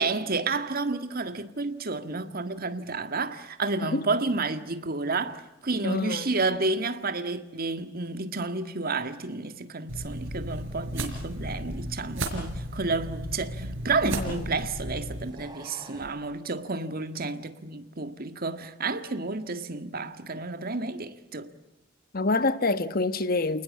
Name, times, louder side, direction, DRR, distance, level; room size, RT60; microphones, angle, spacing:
voice 1, 0.0-21.5, right 3 dB, 50° right, 1.8 m, -31 dB
voice 2, 5.8-6.3 14.0-14.4 22.1-23.6, left 3 dB, 50° left, 1.3 m, -27 dB
sound 1, 9.9-15.3, right 1 dB, 80° right, 4.4 m, -34 dB
sound 2, 13.5-14.4 15.1-16.2, right 2 dB, 20° right, 5.0 m, -49 dB
29.0 x 20.0 x 8.6 m
head